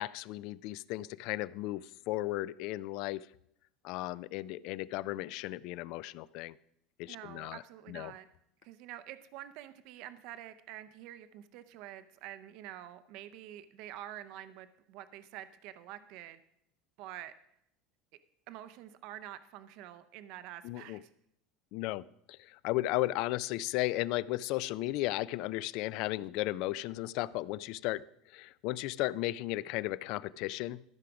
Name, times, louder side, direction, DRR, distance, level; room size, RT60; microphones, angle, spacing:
voice 1, 0.0-3.3 3.8-6.6 7.0-7.6 7.9-8.1 20.6-21.0 21.7-28.0 28.3-30.8, left 17 dB, 55° left, 20 dB, 0.3 m, -35 dB
voice 2, 7.1-8.3 8.6-16.4 17.0-17.3 18.5-21.1, right 12 dB, 55° right, 12 dB, 0.5 m, -47 dB
13.5 x 4.9 x 5.9 m, 0.76 s
cardioid pair, 155°, 0 cm